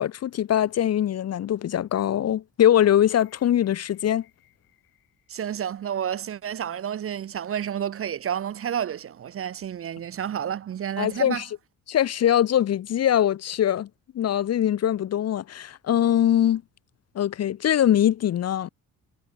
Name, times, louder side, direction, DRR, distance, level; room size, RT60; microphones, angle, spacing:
voice 1, 0.0-4.2 11.0-11.5 11.9-13.9 14.1-16.6 17.2-18.7, left 10 dB, 45° left, 0.6 m, -22 dB
sound 1, 3.0-7.2 7.5-7.6, left 18 dB, 80° left, 7.4 m, -63 dB
voice 2, 5.3-11.4, right 9 dB, 40° right, 0.6 m, -30 dB
supercardioid pair, 65°, 36 cm